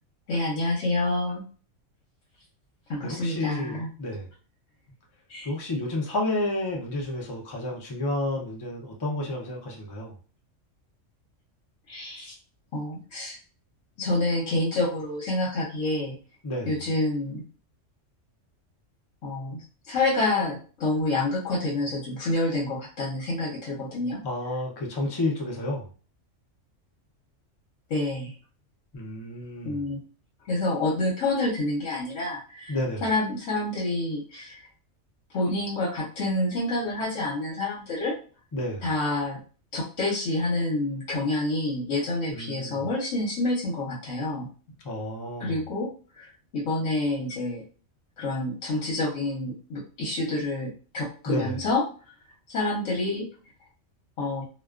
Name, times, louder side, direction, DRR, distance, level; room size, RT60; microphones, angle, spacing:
voice 1, 0.3-1.5 2.9-3.9 5.3-5.5 11.9-12.3 12.7-13.4 14.0-16.1 16.7-17.4 19.2-19.6 19.9-24.2 27.9-28.3 29.6-30.0 30.5-32.8 33.0-34.6 35.3-38.1 38.8-39.4 39.7-44.5 45.4-45.9 46.2-46.3 46.5-47.6 48.2-51.8 52.5-53.3 54.2-54.4, left 2 dB, 75° left, -3 dB, 1.0 m, -28 dB
voice 2, 3.0-4.3 5.4-10.1 16.4-16.7 24.2-25.9 28.9-29.9 32.7-33.1 38.5-38.9 42.3-42.9 44.8-45.7 51.3-51.6, left 1 dB, 35° left, -1 dB, 0.4 m, -31 dB
2.3 x 2.2 x 2.3 m, 0.38 s
omnidirectional pair, 1.3 m